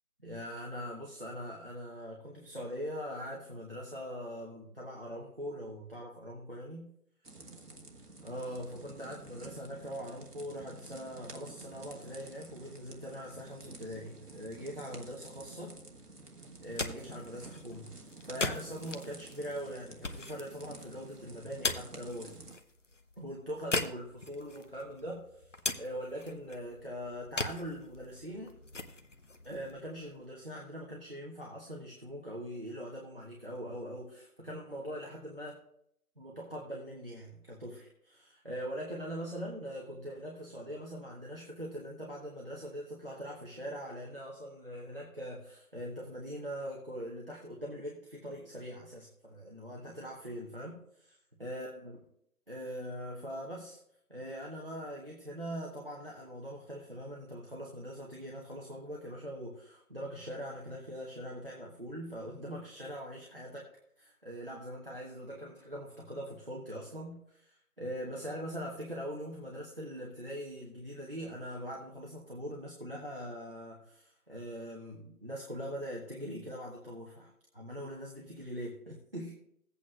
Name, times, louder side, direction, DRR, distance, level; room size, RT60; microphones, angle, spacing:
voice 1, 0.2-6.9 8.2-15.8 16.6-22.4 23.2-28.6 29.4-35.6 36.2-51.1 51.4-52.0 52.5-53.8 54.1-63.7 64.0-79.3, equal, 35° right, -2 dB, 1.1 m, -42 dB
sound 1, 7.2-22.5, right 3 dB, 75° right, 1.4 m, -51 dB
sound 2, 16.5-30.5, left 2 dB, 50° left, 0.8 m, -41 dB
16.5 x 8.4 x 2.4 m, 0.70 s
figure-of-eight pair, 170°, 47 cm